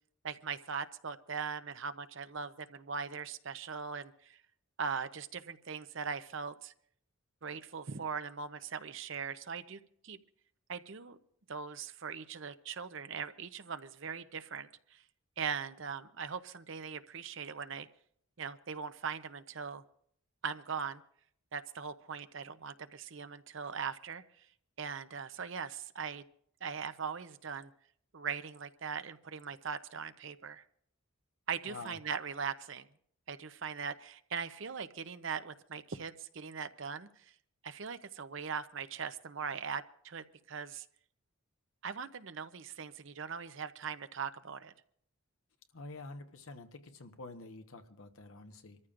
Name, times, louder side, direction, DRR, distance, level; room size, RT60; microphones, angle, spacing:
voice 1, 0.2-4.4 4.8-6.7 7.4-10.2 10.7-11.2 11.5-15.0 15.4-17.9 18.4-19.8 20.4-21.0 21.5-24.5 24.8-26.2 26.6-27.7 28.1-30.6 31.5-32.9 33.3-37.3 37.6-40.9 41.8-44.7, right 6 dB, 60° right, 11 dB, 0.7 m, -40 dB
voice 2, 31.7-32.0 45.7-48.8, left 3 dB, 75° left, 7 dB, 1.1 m, -48 dB
27.0 x 14.0 x 2.5 m, 0.66 s
head